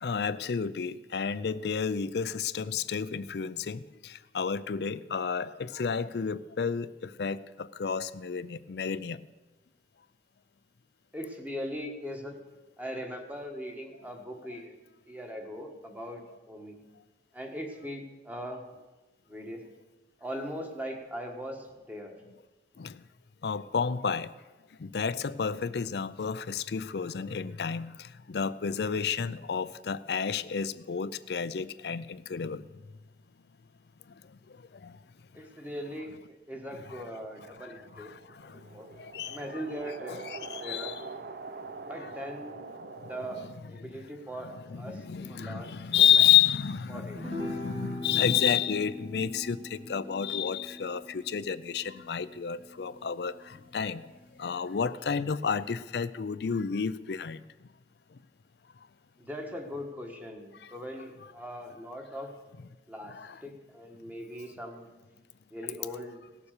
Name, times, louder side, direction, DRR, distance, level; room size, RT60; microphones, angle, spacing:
voice 1, 0.0-9.2 14.5-14.6 22.8-22.9 23.4-24.3 24.8-32.6 34.8-35.0 37.0-37.1 37.6-37.7 38.0-38.1 38.4-38.6 39.0-39.6 40.1-40.9 43.4-43.5 44.4-54.0 54.4-57.4 63.1-63.4, left 7 dB, 65° left, 0.5 m, -30 dB
voice 2, 11.1-12.4 12.8-14.7 15.1-16.8 17.3-18.6 19.3-19.6 20.2-22.2 35.3-38.1 38.7-38.9 39.3-40.2 40.6-41.0 41.9-42.6 43.0-43.4 43.7-46.1 46.9-47.4 59.2-62.3 62.9-64.9 65.5-66.2, equal, 10° right, 1.4 m, -40 dB
sound 1, 36.8-43.5, right 4 dB, 55° right, 0.6 m, -44 dB
sound 2, 47.2-53.7, left 1 dB, 30° right, 1.9 m, -42 dB
17.5 x 7.1 x 6.6 m
head